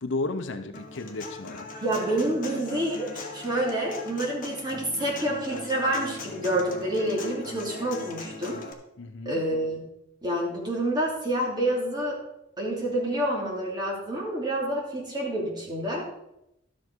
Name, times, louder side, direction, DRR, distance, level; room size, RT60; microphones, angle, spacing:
voice 1, 0.0-1.7 9.0-9.4, left 2 dB, 65° left, 8 dB, 0.8 m, -33 dB
Human voice / Acoustic guitar, 0.7-8.7, left 3 dB, 45° left, 1.5 m, -40 dB
voice 2, 1.8-8.6 9.2-9.8 10.2-12.2 12.6-16.0, right 1 dB, 20° right, -3 dB, 3.0 m, -28 dB
12.5 x 7.7 x 4.6 m, 0.84 s
head